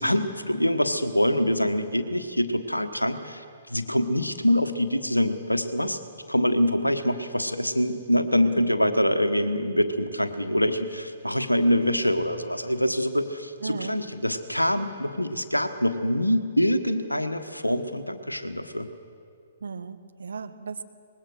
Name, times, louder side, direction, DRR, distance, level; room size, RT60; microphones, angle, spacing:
voice 1, 0.0-6.0 6.3-18.9, equal, 90° left, 9 dB, 1.4 m, -25 dB
voice 2, 13.6-14.0 19.6-20.8, right 5 dB, 65° right, 10 dB, 1.2 m, -36 dB
24.5 x 21.0 x 6.5 m, 2.3 s
figure-of-eight pair, 120°, 0 cm